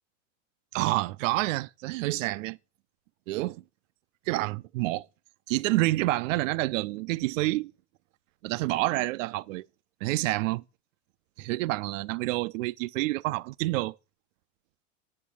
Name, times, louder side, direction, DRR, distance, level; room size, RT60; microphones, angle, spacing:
voice 1, 0.7-2.6 3.3-3.6 4.3-5.1 5.5-7.7 8.4-9.7 10.0-10.6 11.4-13.9, right 19 dB, 85° right, 0.5 m, -28 dB
9.6 x 7.3 x 8.4 m
supercardioid pair, 145°, 37 cm